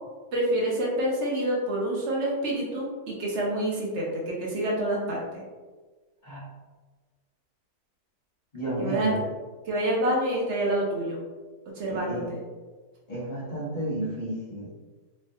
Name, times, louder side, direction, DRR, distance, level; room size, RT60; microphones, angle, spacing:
voice 1, 0.3-5.4 8.8-9.1 9.6-11.2 11.8-12.4, right 1 dB, 60° right, -3 dB, 0.7 m, -27 dB
voice 2, 8.5-9.2 11.9-12.3 13.1-14.7, right 1 dB, 35° left, -8 dB, 0.8 m, -31 dB
3.1 x 2.1 x 2.7 m, 1.3 s
omnidirectional pair, 1.8 m